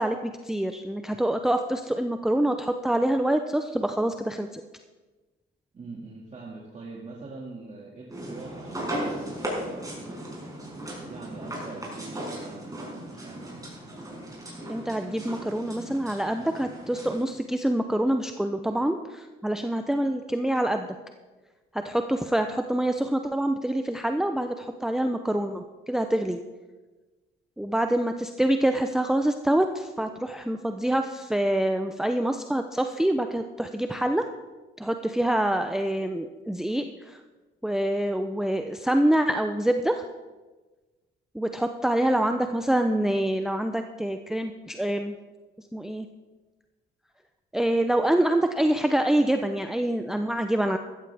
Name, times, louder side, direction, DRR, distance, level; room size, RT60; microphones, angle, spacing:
voice 1, 0.0-4.6 14.7-20.9 21.7-26.4 27.6-34.3 34.8-37.2 37.6-40.0 41.3-45.1 45.7-46.1 47.5-50.8, right 1 dB, ahead, 6 dB, 0.6 m, -26 dB
voice 2, 5.7-10.5 11.1-13.4, right 3 dB, 35° right, -3 dB, 2.2 m, -43 dB
sound 1, 8.1-17.2, right 1 dB, 20° right, 5.2 m, -37 dB
14.0 x 13.5 x 3.5 m, 1.2 s
cardioid pair, 90°, 20 cm